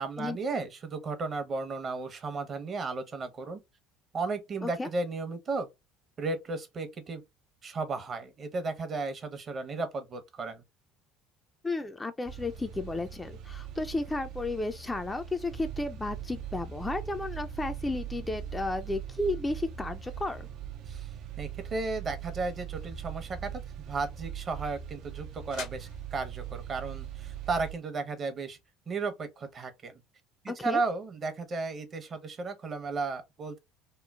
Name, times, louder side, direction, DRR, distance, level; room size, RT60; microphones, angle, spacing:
voice 1, 0.0-3.6 4.1-5.7 6.2-7.2 7.6-10.6 20.9-28.6 28.9-30.0 30.6-33.6, right 3 dB, 40° right, 0.7 m, -34 dB
voice 2, 11.6-20.5 30.5-30.8, left 2 dB, 15° left, 0.3 m, -33 dB
sound 1, 12.3-27.7, right 9 dB, 60° right, 0.4 m, -41 dB
sound 2, 22.8-28.7, left 6 dB, 70° left, 0.7 m, -51 dB
3.0 x 2.0 x 2.3 m
hypercardioid pair, 65°, 0 cm